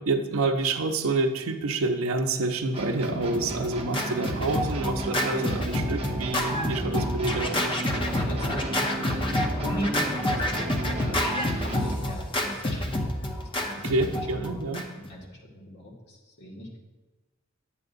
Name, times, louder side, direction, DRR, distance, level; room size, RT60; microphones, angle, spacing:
voice 1, 0.0-7.8 13.8-14.8, right 2 dB, 85° right, 6 dB, 0.6 m, -28 dB
sound 1, 2.7-12.2, right 2 dB, 30° right, 0.8 m, -34 dB
Scratching (performance technique), 3.0-15.1, left 1 dB, 25° left, 0.7 m, -28 dB
voice 2, 8.1-11.2 11.6-13.1 13.4-14.0 14.3-16.8, equal, 55° left, -2 dB, 1.8 m, -38 dB
9.6 x 8.4 x 2.6 m, 1.2 s
head